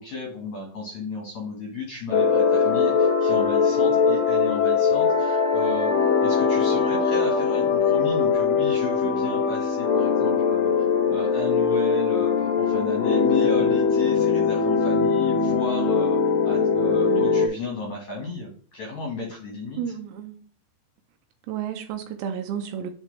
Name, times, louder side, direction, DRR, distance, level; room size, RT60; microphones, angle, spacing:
voice 1, 0.0-5.9 6.2-16.2 16.4-19.9, left 4 dB, 55° left, 2.2 m, -34 dB
sound 1, 2.1-17.5, left 5 dB, 85° left, 1.9 m, -21 dB
voice 2, 19.8-20.3 21.5-22.9, right 8 dB, 80° right, 2.8 m, -32 dB
9.4 x 4.3 x 3.3 m
omnidirectional pair, 5.3 m